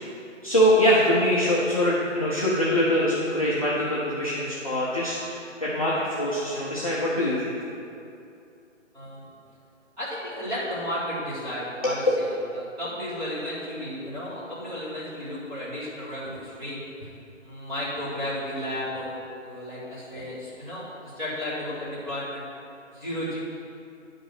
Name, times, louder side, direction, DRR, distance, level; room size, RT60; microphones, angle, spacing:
voice 1, 0.4-7.6 11.8-11.9, equal, 30° left, -7 dB, 0.8 m, -23 dB
voice 2, 8.9-9.2 10.0-16.8 17.4-22.4 22.9-23.4, equal, 5° right, -16 dB, 2.2 m, -33 dB
10.0 x 5.3 x 5.9 m, 2.6 s
hypercardioid pair, 175°, 38 cm